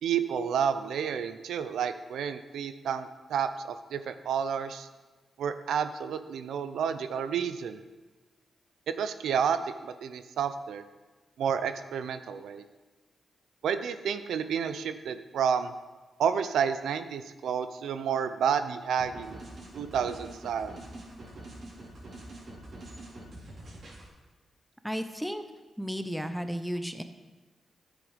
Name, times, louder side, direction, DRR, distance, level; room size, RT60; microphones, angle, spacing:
voice 1, 0.0-4.9 5.4-7.8 8.9-10.8 11.4-12.6 13.6-15.7 16.2-19.4 19.8-20.8, right 7 dB, 85° right, 11 dB, 0.5 m, -30 dB
sound 1, 19.0-24.1, right 1 dB, 60° right, 3.9 m, -45 dB
voice 2, 24.8-25.4 25.8-27.0, equal, ahead, 9 dB, 0.8 m, -33 dB
9.6 x 8.1 x 5.0 m, 1.2 s
cardioid pair, 60°, 0 cm